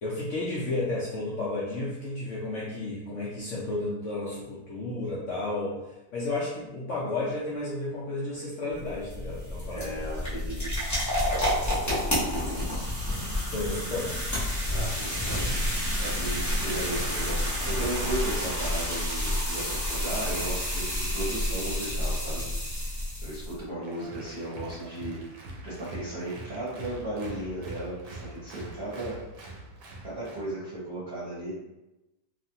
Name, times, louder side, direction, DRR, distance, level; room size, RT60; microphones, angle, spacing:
voice 1, 0.0-9.9 13.5-14.2, left 2 dB, 70° left, -6 dB, 0.7 m, -32 dB
sound 1, 8.7-23.6, left 1 dB, 15° left, 0.6 m, -29 dB
voice 2, 9.7-10.7 12.3-12.7 14.7-22.4 22.9-25.2 25.6-29.2 30.0-31.6, right 1 dB, 40° right, -10 dB, 1.0 m, -35 dB
Applause, 23.8-30.5, right 2 dB, 70° right, 1.0 m, -43 dB
2.9 x 2.4 x 2.7 m, 0.97 s
omnidirectional pair, 1.9 m